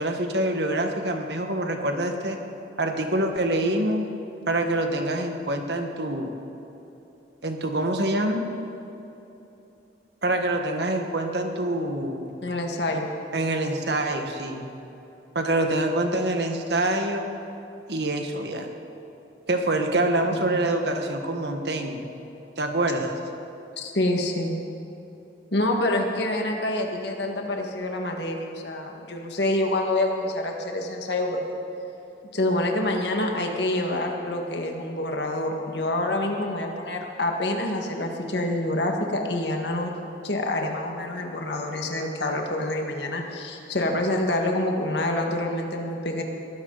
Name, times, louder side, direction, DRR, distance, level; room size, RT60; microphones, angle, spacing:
voice 1, 0.0-2.4 2.8-4.0 4.5-6.3 7.4-8.4 10.2-12.3 13.3-14.7 15.3-17.3 17.9-18.7 19.5-22.1 22.6-23.1, right 1 dB, 65° right, 4 dB, 1.6 m, -25 dB
voice 2, 12.4-13.1 19.9-20.6 23.8-24.5 25.5-31.4 32.3-39.9 40.2-46.2, left 1 dB, 70° left, 2 dB, 1.8 m, -27 dB
21.5 x 14.5 x 4.1 m, 3.0 s
head